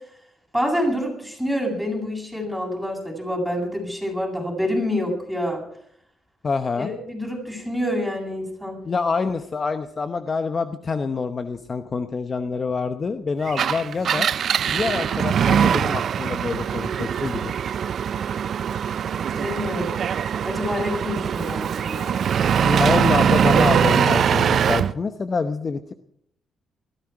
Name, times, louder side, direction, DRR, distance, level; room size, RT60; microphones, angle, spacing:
voice 1, 0.5-5.6 6.8-8.8 19.3-20.0 20.4-22.2, equal, ahead, -1 dB, 8.0 m, -27 dB
voice 2, 6.4-6.9 8.8-14.3 14.6-17.5 22.6-25.8, left 4 dB, 35° left, 9 dB, 0.9 m, -26 dB
Engine, 13.5-24.9, right 8 dB, 60° right, 0.6 m, -22 dB
20.5 x 14.5 x 4.9 m, 0.69 s
cardioid pair, 90°, 0 cm